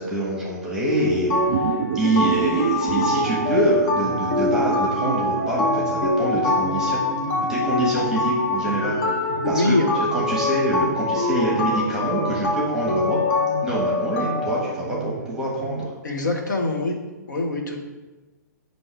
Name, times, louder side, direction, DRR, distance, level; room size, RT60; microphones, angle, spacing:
voice 1, 0.0-7.0 7.5-9.2 9.4-9.8 10.1-13.2 13.6-15.9, right 1 dB, 5° right, -4 dB, 1.4 m, -26 dB
sound 1, 0.9-14.6, left 2 dB, 45° left, 1.2 m, -24 dB
sound 2, 1.1-15.9, right 8 dB, 55° right, 0.3 m, -32 dB
voice 2, 9.5-9.9 16.0-17.0 17.3-17.8, left 2 dB, 70° left, 2 dB, 1.3 m, -23 dB
7.8 x 3.0 x 4.6 m, 1.2 s
figure-of-eight pair, 120°, 10 cm